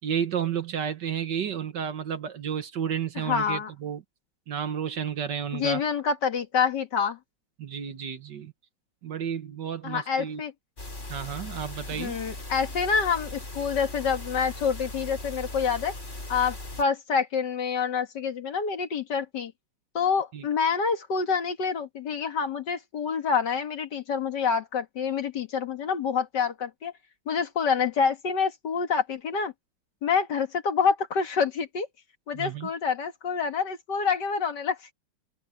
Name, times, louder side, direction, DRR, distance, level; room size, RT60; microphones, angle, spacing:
voice 1, 0.0-4.0 4.5-5.8 7.6-8.5 9.0-10.4 11.1-12.2 20.3-20.5 32.3-32.7, right 8 dB, 60° right, 1.8 m, -31 dB
voice 2, 3.2-3.7 5.5-7.2 9.8-10.5 11.9-15.9 16.3-19.5 19.9-26.9 27.3-29.5 30.0-31.9 32.3-34.9, left 6 dB, 60° left, 2.2 m, -27 dB
sound 1, 10.8-16.8, left 2 dB, 35° left, 4.7 m, -38 dB
omnidirectional pair, 2.2 m